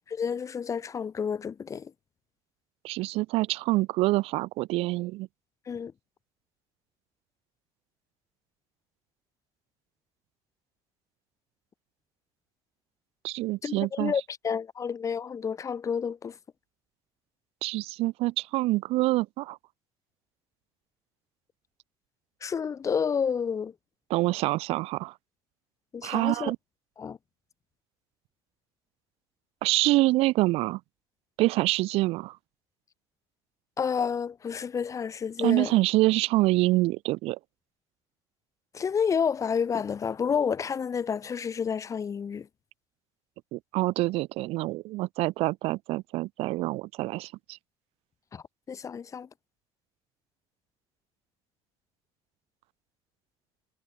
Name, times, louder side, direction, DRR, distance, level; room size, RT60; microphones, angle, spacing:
voice 1, 0.1-1.9 5.7-5.9 13.6-16.4 22.4-23.7 25.9-26.5 27.0-27.2 33.8-35.8 38.7-42.5 48.3-49.3, left 6 dB, 30° left, 0.6 m, -30 dB
voice 2, 2.8-5.3 13.2-14.1 17.6-19.6 24.1-25.1 26.0-26.6 29.6-30.8 31.4-32.3 35.4-37.4 43.5-47.3, right 19 dB, 75° right, 0.8 m, -26 dB
cardioid pair, 100°, 10 cm